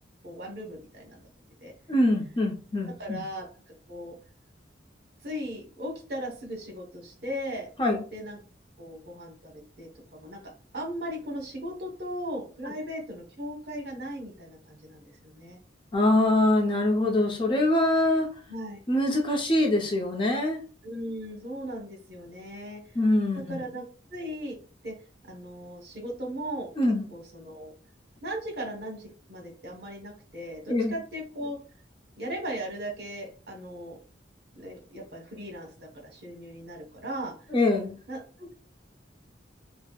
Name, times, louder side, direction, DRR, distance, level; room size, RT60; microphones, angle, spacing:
voice 1, 0.2-1.2 1.6-1.7 3.0-3.5 3.9-4.1 5.2-7.7 8.1-8.4 8.8-10.4 10.7-15.6 18.5-18.8 20.8-22.8 23.3-23.8 24.1-24.6 24.8-25.0 25.2-26.7 27.1-27.7 28.2-31.6 32.2-34.0 34.5-37.3 38.1-38.5, equal, 60° right, 2 dB, 1.0 m, -37 dB
voice 2, 1.9-3.2 7.8-8.0 15.9-18.3 18.9-20.6 23.0-23.6 26.8-27.1 30.7-30.9 37.5-38.0, left 1 dB, 25° left, 1 dB, 0.5 m, -24 dB
4.9 x 2.0 x 2.2 m, 0.39 s
head